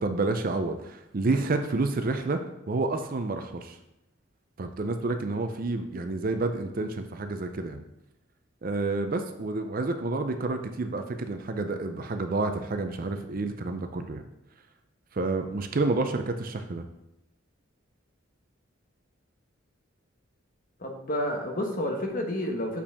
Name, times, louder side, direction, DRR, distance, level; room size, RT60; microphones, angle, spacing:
voice 1, 0.0-2.4 2.7-3.7 4.6-7.8 8.6-14.2 15.1-16.8, right 3 dB, 45° right, 7 dB, 0.5 m, -29 dB
voice 2, 20.8-22.8, left 1 dB, 40° left, 3 dB, 1.0 m, -30 dB
6.9 x 4.9 x 3.5 m, 0.87 s
head